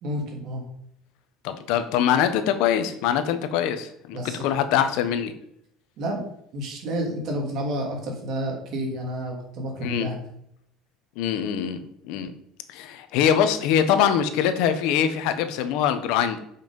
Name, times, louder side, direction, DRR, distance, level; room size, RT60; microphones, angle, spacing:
voice 1, 0.0-0.6 4.1-4.6 6.0-6.2 6.5-10.2, equal, 45° right, 0 dB, 3.0 m, -30 dB
voice 2, 1.4-5.3 9.8-10.1 11.2-12.3 12.7-16.4, left 9 dB, 65° left, 9 dB, 1.1 m, -23 dB
8.0 x 5.8 x 5.5 m, 0.72 s
cardioid pair, 165°, 0 cm